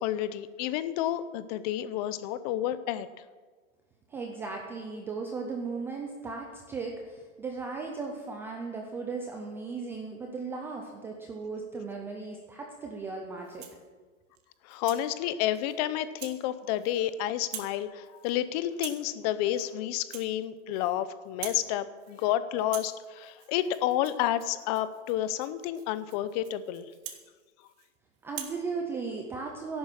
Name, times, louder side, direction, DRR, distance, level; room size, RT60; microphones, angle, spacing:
voice 1, 0.0-3.1 14.6-26.9, left 12 dB, 30° left, 14 dB, 0.7 m, -30 dB
voice 2, 4.1-13.7 28.2-29.8, right 4 dB, 5° right, 1 dB, 0.4 m, -36 dB
Rattle (instrument), 13.4-13.9 14.4-15.1 15.5-15.8 16.2-16.4 16.7-17.1 17.4-17.8 18.0-18.4 18.7-19.1 19.5-19.7 20.0-21.0 21.3-21.7 22.0-22.3 22.6-27.9 28.3-28.6, right 10 dB, 40° right, 2.0 m, -45 dB
14.0 x 11.5 x 7.4 m, 1.4 s
hypercardioid pair, 150°, 41 cm